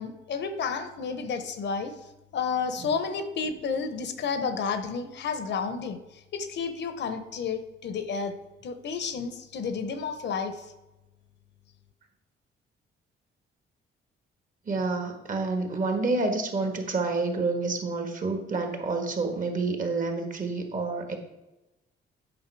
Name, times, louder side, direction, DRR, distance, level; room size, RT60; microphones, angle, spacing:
voice 1, 0.0-1.9 2.3-6.0 6.3-8.3 8.6-10.7, left 5 dB, 65° left, 9 dB, 0.9 m, -31 dB
voice 2, 14.7-21.2, right 3 dB, 40° right, 4 dB, 1.6 m, -28 dB
8.7 x 5.5 x 4.6 m, 0.99 s
cardioid pair, 90°, 20 cm